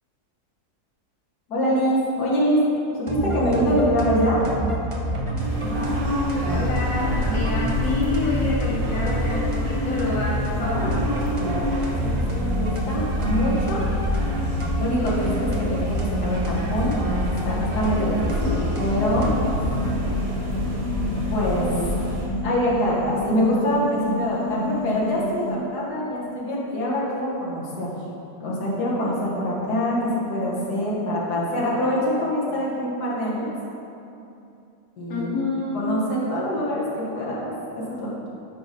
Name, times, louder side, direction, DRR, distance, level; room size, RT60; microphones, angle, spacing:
voice 1, 1.5-2.6 3.0-4.4 12.0-13.8 14.8-19.3 21.3-21.7 22.4-27.9 28.4-33.5 35.0-35.3 35.7-38.3, equal, 80° left, -6 dB, 2.0 m, -24 dB
sound 1, 3.1-19.7, right 1 dB, 40° right, 0.4 m, -27 dB
sound 2, 5.4-22.2, left 1 dB, 75° right, 1.9 m, -28 dB
voice 2, 6.5-11.2 35.1-35.8, left 2 dB, 55° left, -6 dB, 1.7 m, -28 dB
sound 3, 19.3-25.6, left 1 dB, 40° left, 0.7 m, -30 dB
8.8 x 5.2 x 4.2 m, 2.7 s
omnidirectional pair, 1.7 m